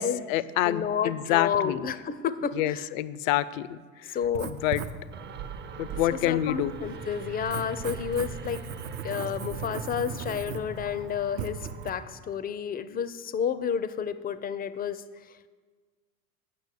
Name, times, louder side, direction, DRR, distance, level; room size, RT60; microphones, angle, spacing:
voice 1, 0.0-1.8 2.6-4.2 4.5-4.8 5.8-6.7, left 13 dB, 70° left, 17 dB, 0.5 m, -27 dB
voice 2, 0.6-2.9 4.0-4.5 6.1-8.6 9.0-15.5, left 7 dB, 20° left, 14 dB, 0.5 m, -31 dB
Writing, 4.2-11.9, right 7 dB, 65° right, 0.8 m, -39 dB
sound 1, 5.1-12.1, right 4 dB, 25° right, 0.6 m, -42 dB
8.5 x 6.3 x 6.5 m, 1.5 s
hypercardioid pair, 90°, 42 cm